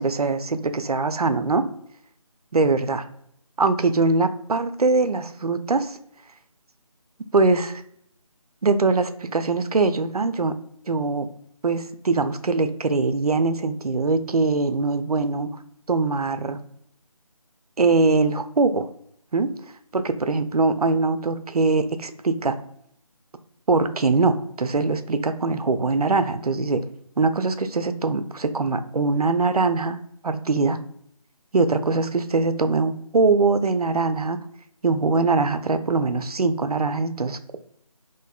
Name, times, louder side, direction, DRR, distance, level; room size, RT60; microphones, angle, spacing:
voice 1, 0.0-1.6 2.5-3.1 3.6-6.0 7.3-7.8 8.6-10.5 10.9-11.3 11.6-15.5 15.9-16.6 17.8-18.9 19.3-19.5 19.9-22.6 23.7-26.8 27.2-30.0 30.2-30.8 31.5-34.4 34.8-37.6, right 3 dB, 85° right, 10 dB, 0.4 m, -22 dB
3.8 x 2.5 x 2.3 m, 0.69 s
figure-of-eight pair, 160°, 19 cm